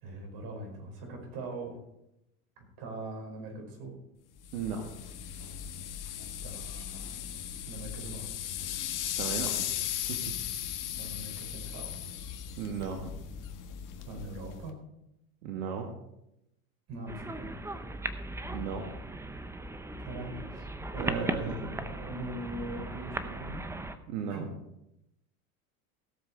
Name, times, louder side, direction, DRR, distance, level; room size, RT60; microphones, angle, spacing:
voice 1, 0.0-1.8 2.6-4.0 6.4-7.2 7.6-8.4 10.9-12.0 14.1-14.8 16.9-17.5 20.0-23.7 24.3-24.5, right 1 dB, 55° right, 2 dB, 5.0 m, -41 dB
sound 1, 4.4-14.7, left 10 dB, 45° left, 1.8 m, -37 dB
voice 2, 4.5-4.9 9.2-9.7 10.1-10.3 12.6-13.2 15.4-15.9 18.5-18.8 21.0-21.6 24.1-24.5, right 6 dB, 75° right, 3 dB, 1.8 m, -35 dB
sound 2, 17.1-24.0, right 1 dB, 5° right, 0.7 m, -38 dB
17.0 x 7.4 x 4.5 m, 0.85 s
supercardioid pair, 105°, 43 cm